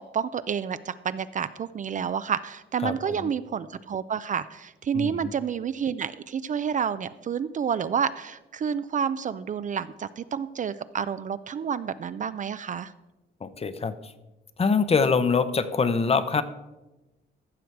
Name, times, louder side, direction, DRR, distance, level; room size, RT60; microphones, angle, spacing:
voice 1, 0.1-12.9, right 7 dB, 40° right, 14 dB, 0.4 m, -29 dB
voice 2, 2.8-3.3 4.9-5.3 13.4-14.1 14.6-16.4, left 5 dB, 30° left, 12 dB, 0.7 m, -24 dB
14.5 x 6.3 x 4.6 m, 1.1 s
cardioid pair, 90°, 20 cm